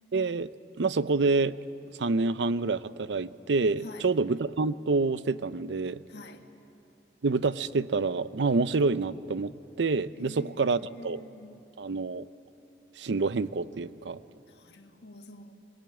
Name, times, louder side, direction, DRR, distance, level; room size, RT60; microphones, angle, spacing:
voice 1, 0.1-0.5 0.8-1.6 2.0-6.0 7.2-9.5 9.8-11.2 11.8-12.3 13.0-14.2, right 3 dB, 80° right, 16 dB, 0.6 m, -27 dB
voice 2, 6.1-6.4 10.2-11.6 14.5-15.6, left 1 dB, 70° left, 5 dB, 1.7 m, -47 dB
23.5 x 20.5 x 8.8 m, 2.7 s
head